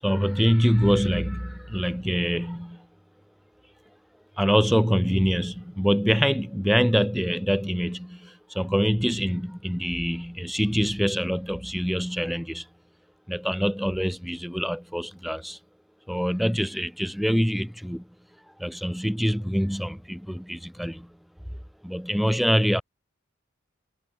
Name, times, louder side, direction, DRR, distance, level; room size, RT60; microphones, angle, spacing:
voice 1, 0.0-2.8 4.4-12.7 13.3-15.6 16.1-18.0 18.6-21.1 21.8-22.8, equal, ahead, 6.6 m, -25 dB
head